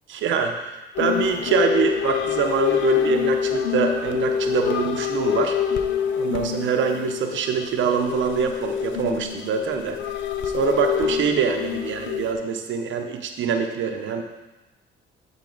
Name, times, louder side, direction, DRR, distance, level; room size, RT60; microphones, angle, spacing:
voice 1, 0.1-5.6 6.2-10.0 10.5-14.2, right 6 dB, 75° right, 4 dB, 0.8 m, -24 dB
sound 1, 1.0-12.3, left 8 dB, 75° left, 0.6 m, -26 dB
11.0 x 4.1 x 3.9 m, 1.1 s
cardioid pair, 90°, 20 cm